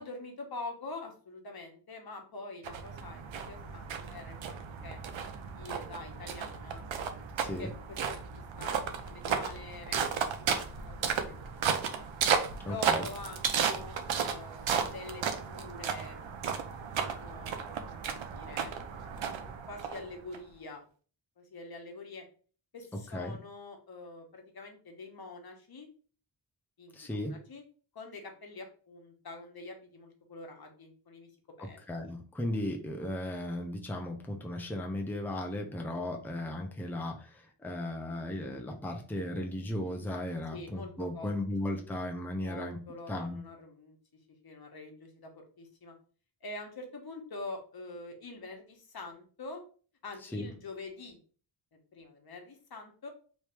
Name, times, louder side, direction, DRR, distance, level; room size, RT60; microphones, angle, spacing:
voice 1, 0.0-4.5 4.8-5.0 5.5-6.8 7.4-7.7 8.1-8.2 8.6-11.4 11.8-12.0 12.6-16.4 16.8-18.7 19.7-20.8 21.4-22.2 22.7-25.9 26.8-27.6 27.9-31.3 31.6-31.8 32.1-32.2 40.5-40.9 41.1-41.3 41.8-41.9 42.4-44.0 44.4-45.9 46.4-49.6 50.0-51.2 51.7-53.1, left 3 dB, 55° left, 3 dB, 1.1 m, -45 dB
sound 1, 2.6-20.4, right 7 dB, 80° right, 0.7 m, -34 dB
voice 2, 7.4-7.7 12.6-13.1 22.9-23.4 26.9-27.4 31.6-43.4 50.3-50.4, left 1 dB, 5° left, 1 dB, 0.6 m, -36 dB
3.1 x 2.7 x 3.4 m, 0.40 s
wide cardioid pair, 85°, 45 cm